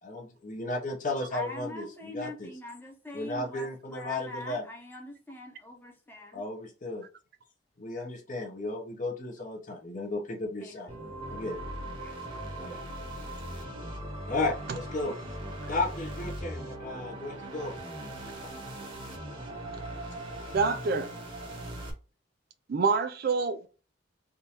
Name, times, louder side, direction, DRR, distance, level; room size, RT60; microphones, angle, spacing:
voice 1, 0.0-2.5 3.1-4.6 6.3-7.0 7.8-10.9 11.3-11.6 12.6-12.8 14.3-15.2 15.7-17.7, left 2 dB, 40° left, 0.8 m, -34 dB
voice 2, 1.3-6.4 10.6-10.8 12.0-12.2, left 1 dB, 10° left, 0.8 m, -43 dB
sound 1, 10.9-21.9, right 1 dB, 25° right, 1.0 m, -39 dB
voice 3, 20.5-21.1 22.7-23.7, right 4 dB, 50° right, 0.4 m, -26 dB
3.6 x 2.6 x 2.9 m
head